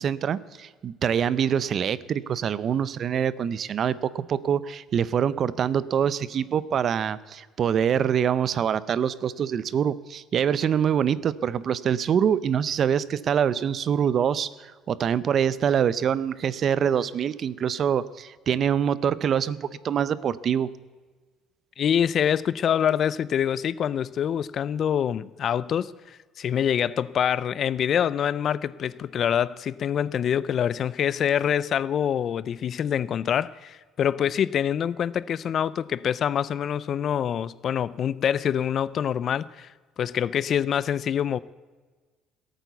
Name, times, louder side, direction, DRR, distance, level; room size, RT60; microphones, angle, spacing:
voice 1, 0.0-20.7, right 8 dB, 35° right, 0.5 m, -25 dB
voice 2, 21.8-39.7 40.0-41.4, left 9 dB, 40° left, 0.4 m, -25 dB
17.5 x 9.1 x 8.2 m
cardioid pair, 160°, 0 cm